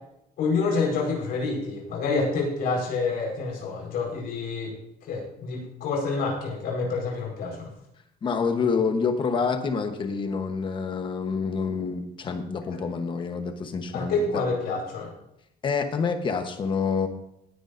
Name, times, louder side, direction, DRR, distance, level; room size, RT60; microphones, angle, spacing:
voice 1, 0.4-4.7 5.1-7.7 13.9-15.1, left 4 dB, 70° left, 0 dB, 4.7 m, -27 dB
voice 2, 8.2-14.4 15.6-17.1, left 5 dB, 30° left, 7 dB, 1.1 m, -27 dB
18.5 x 9.7 x 2.6 m, 0.81 s
cardioid pair, 180°, 16 cm